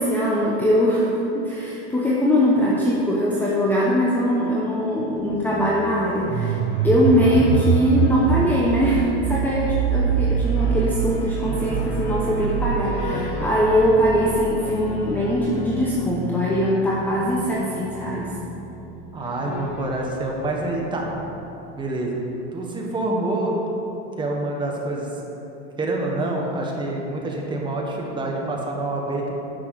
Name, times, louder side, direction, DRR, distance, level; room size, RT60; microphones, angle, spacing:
voice 1, 0.0-6.6 6.8-18.3, equal, 5° left, -5 dB, 0.8 m, -21 dB
sound 1, 5.2-21.8, equal, 50° left, 1.9 m, -34 dB
sound 2, 6.3-15.0, right 8 dB, 40° right, 0.4 m, -24 dB
voice 2, 7.4-7.7 11.4-11.8 12.4-12.6 13.1-13.2 19.1-21.1 21.7-22.2 22.5-23.6 24.2-25.1 25.8-29.4, right 2 dB, 15° right, -1 dB, 1.3 m, -27 dB
10.0 x 6.0 x 6.5 m, 2.9 s
supercardioid pair, 150°, 33 cm